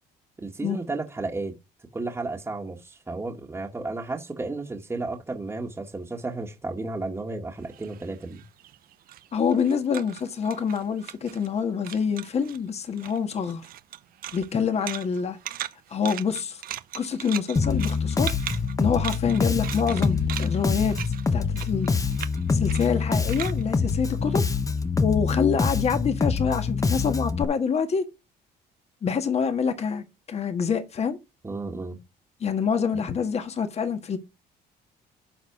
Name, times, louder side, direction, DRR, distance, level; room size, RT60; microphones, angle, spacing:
voice 1, 0.4-1.5 1.9-8.4 31.4-32.0 32.9-33.0, right 3 dB, 15° right, 1.6 m, -33 dB
sound 1, 7.6-11.6 11.8-12.6 12.9-24.8, right 12 dB, 60° right, 0.7 m, -39 dB
voice 2, 9.3-13.6 14.3-15.4 15.9-16.6 16.9-18.3 18.8-21.0 21.3-21.9 22.5-24.4 25.0-28.0 29.0-31.2 32.4-34.2, left 6 dB, 40° left, 1.6 m, -26 dB
Bass guitar, 17.6-27.4, left 5 dB, 20° left, 1.0 m, -25 dB
11.5 x 4.2 x 6.0 m
cardioid pair, 110°, 17 cm